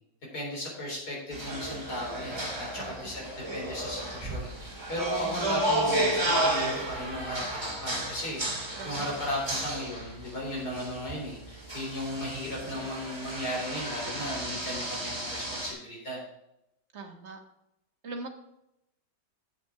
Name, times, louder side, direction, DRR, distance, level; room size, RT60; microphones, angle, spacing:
voice 1, 0.3-16.2, equal, 65° left, -3 dB, 4.5 m, -36 dB
sound 1, 1.3-15.7, right 1 dB, 15° right, 2.1 m, -33 dB
voice 2, 2.7-3.1 8.7-9.1 16.9-17.4 18.0-18.3, right 3 dB, 40° right, 3 dB, 1.6 m, -41 dB
8.7 x 7.0 x 4.8 m, 0.85 s
omnidirectional pair, 1.8 m